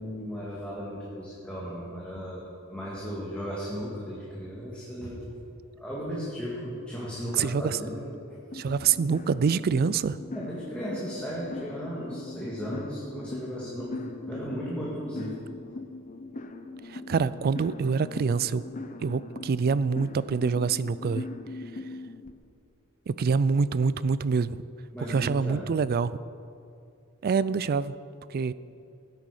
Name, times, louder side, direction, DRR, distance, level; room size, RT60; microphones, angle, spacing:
voice 1, 0.0-5.4 5.8-8.7 10.3-14.0 14.3-15.4 24.9-25.7, equal, 5° left, -7 dB, 1.9 m, -36 dB
voice 2, 7.4-7.8 8.5-10.2 16.9-18.6 19.0-21.3 23.1-24.6 25.1-26.2 27.2-27.9 28.3-28.5, right 5 dB, 45° right, 16 dB, 0.4 m, -26 dB
sound 1, 8.5-22.3, left 2 dB, 35° left, 0.7 m, -40 dB
16.0 x 9.1 x 5.0 m, 2.5 s
head